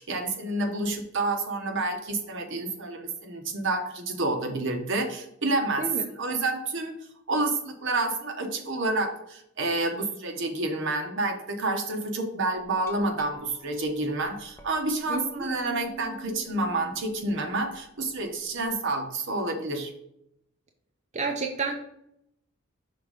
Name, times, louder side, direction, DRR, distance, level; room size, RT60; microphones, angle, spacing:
voice 1, 0.0-5.9 6.2-7.0 7.3-19.9, right 2 dB, 65° right, 4 dB, 1.0 m, -29 dB
Glass, 12.6-18.7, right 4 dB, 15° left, 0.8 m, -47 dB
voice 2, 15.1-15.5 21.1-21.8, right 4 dB, 35° right, 2 dB, 0.6 m, -30 dB
5.9 x 3.6 x 5.0 m, 0.77 s
head